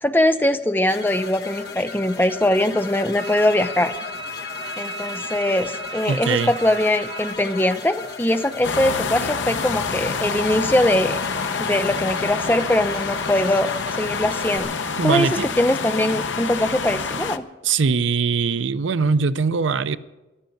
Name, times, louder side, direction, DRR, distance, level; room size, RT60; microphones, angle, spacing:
voice 1, 0.0-3.9 4.8-11.2 11.6-14.7 15.0-15.3 15.6-17.4, left 1 dB, 10° left, 0.5 m, -21 dB
sound 1, 0.9-14.6, left 5 dB, 60° left, 1.9 m, -35 dB
Wind instrument woodwind instrument, 3.2-7.4, right 2 dB, 35° right, 3.0 m, -35 dB
voice 2, 6.1-6.5 15.0-15.5 17.6-20.0, right 5 dB, 85° right, 0.6 m, -21 dB
sound 2, 8.6-17.4, left 5 dB, 80° left, 0.8 m, -27 dB
14.5 x 12.0 x 7.1 m
head